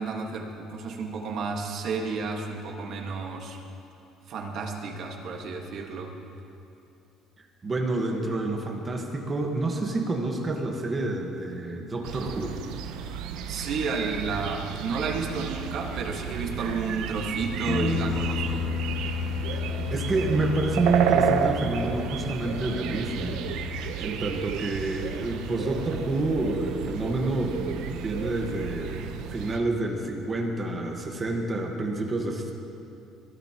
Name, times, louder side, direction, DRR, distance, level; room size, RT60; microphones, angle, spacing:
voice 1, 0.0-3.6 4.3-6.1 13.5-18.7, right 4 dB, 45° right, 2 dB, 1.6 m, -32 dB
voice 2, 7.6-12.6 19.5-19.6 19.9-23.5 24.0-32.5, right 2 dB, 20° right, 2 dB, 1.4 m, -28 dB
sound 1, 12.0-29.6, right 8 dB, 75° right, 0.9 m, -32 dB
sound 2, 17.7-23.9, left 7 dB, 30° left, 0.6 m, -32 dB
22.5 x 14.5 x 3.0 m, 2.7 s
cardioid pair, 160°, 0 cm